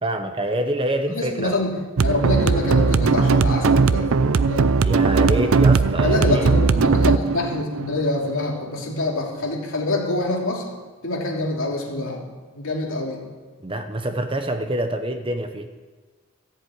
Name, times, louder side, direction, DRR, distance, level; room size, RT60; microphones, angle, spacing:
voice 1, 0.0-1.6 4.8-6.5 13.6-15.7, right 1 dB, 25° right, 7 dB, 0.8 m, -26 dB
voice 2, 1.1-1.7 2.0-4.1 4.5-4.7 5.2-5.4 6.0-10.6 11.0-12.2 12.5-13.2, left 2 dB, 60° left, -2 dB, 3.0 m, -25 dB
sound 1, 2.0-8.9, right 4 dB, 65° right, 0.5 m, -19 dB
14.0 x 7.9 x 8.7 m, 1.4 s
head